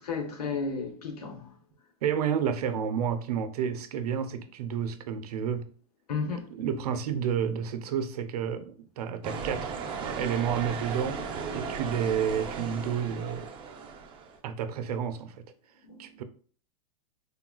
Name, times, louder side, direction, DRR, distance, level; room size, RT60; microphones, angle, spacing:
voice 1, 0.0-1.5 6.1-6.5 15.8-16.1, left 4 dB, 90° left, 0.8 m, -33 dB
voice 2, 2.0-5.7 6.3-13.5 14.4-15.4 16.0-16.2, right 8 dB, 80° right, 0.5 m, -31 dB
sound 1, 9.2-14.4, right 5 dB, 25° right, 0.5 m, -36 dB
3.5 x 2.3 x 2.2 m
hypercardioid pair, 125°, 19 cm